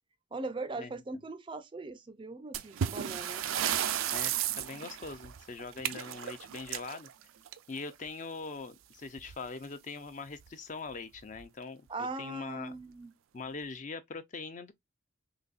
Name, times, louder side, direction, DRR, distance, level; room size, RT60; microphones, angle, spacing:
voice 1, 0.3-3.4 11.9-13.1, right 2 dB, 25° right, 0.4 m, -39 dB
sound 1, 2.5-7.9 9.2-9.3 9.6-9.7 10.4-10.5 11.2-11.4, right 10 dB, 85° right, 0.4 m, -34 dB
voice 2, 4.1-7.1 7.7-12.7 13.3-14.7, left 4 dB, 40° left, 0.5 m, -42 dB
3.9 x 3.0 x 2.4 m
head